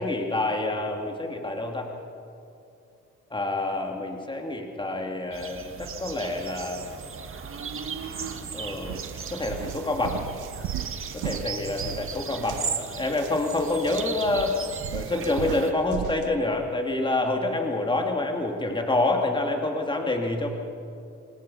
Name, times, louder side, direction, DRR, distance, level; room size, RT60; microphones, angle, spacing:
voice 1, 0.0-1.9 3.3-6.9 8.5-9.0 9.3-10.2 11.1-14.5 14.9-20.5, left 2 dB, 15° left, 2 dB, 2.7 m, -27 dB
sound 1, 5.3-15.7, right 6 dB, 45° right, 1.8 m, -36 dB
sound 2, 8.2-8.4 8.8-16.3, right 12 dB, 85° right, 0.9 m, -37 dB
26.5 x 20.5 x 5.7 m, 2.5 s
cardioid pair, 90°, 30 cm